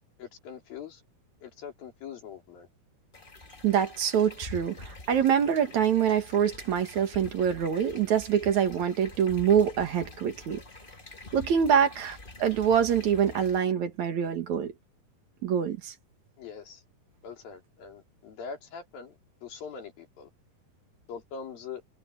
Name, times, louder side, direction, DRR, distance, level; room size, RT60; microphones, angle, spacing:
voice 1, 0.2-1.0 1.4-2.7 16.4-16.8 17.2-20.3 21.1-21.8, left 6 dB, 75° left, 5.2 m, -42 dB
sound 1, 3.1-13.6, left 2 dB, 30° left, 0.9 m, -46 dB
voice 2, 3.6-10.6 11.3-14.7 15.4-15.9, right 8 dB, 60° right, 2.9 m, -25 dB
omnidirectional pair, 4.1 m